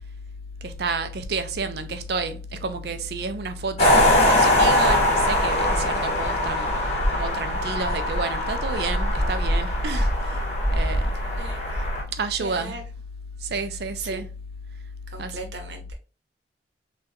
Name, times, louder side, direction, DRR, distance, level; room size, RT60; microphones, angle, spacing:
voice 1, 0.6-6.7 7.1-10.4 10.7-11.1 12.1-12.8 13.4-14.3 15.2-15.5, right 3 dB, 60° right, 0.4 m, -30 dB
sound 1, 3.8-12.0, left 1 dB, 40° left, 0.8 m, -22 dB
voice 2, 11.3-11.8 12.4-12.8 14.0-14.2 15.1-15.9, right 3 dB, 85° right, 0.8 m, -38 dB
3.7 x 2.2 x 2.6 m
head